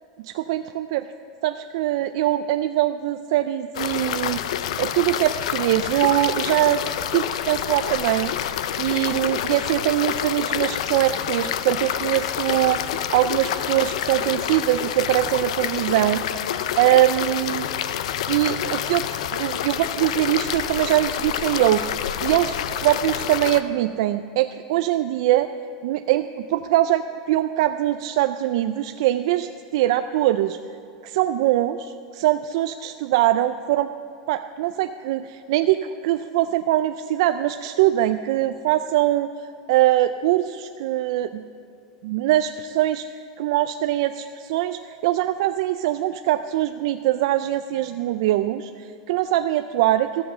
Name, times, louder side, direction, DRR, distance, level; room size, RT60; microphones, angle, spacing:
voice 1, 0.2-1.0 1.4-4.4 4.8-6.8 7.1-16.2 16.8-17.7 18.3-19.1 19.3-21.9 22.2-25.5 25.8-30.6 31.0-33.9 34.3-39.3 39.7-41.4 42.0-43.0 43.4-50.2, right 14 dB, 55° right, 9 dB, 0.3 m, -22 dB
sound 1, 3.7-23.6, left 10 dB, 80° left, 0.5 m, -27 dB
14.0 x 7.7 x 6.7 m, 2.4 s
supercardioid pair, 180°, 3 cm